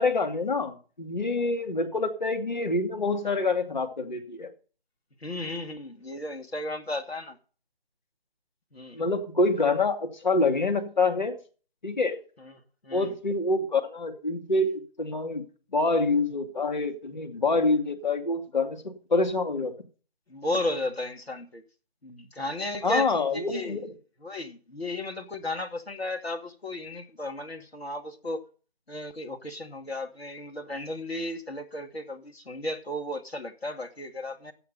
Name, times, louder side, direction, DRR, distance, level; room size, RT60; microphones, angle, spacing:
voice 1, 0.0-4.5 8.9-11.4 11.8-12.2 12.9-15.5 15.7-19.7 22.8-23.9, left 3 dB, 50° left, 2.4 m, -26 dB
voice 2, 5.2-7.4 8.7-9.0 12.4-12.5 12.8-13.1 20.3-21.6 22.0-23.8 24.2-28.4 28.9-34.5, left 1 dB, 90° left, 2.4 m, -34 dB
13.0 x 8.6 x 5.6 m
figure-of-eight pair, 170°, 30 cm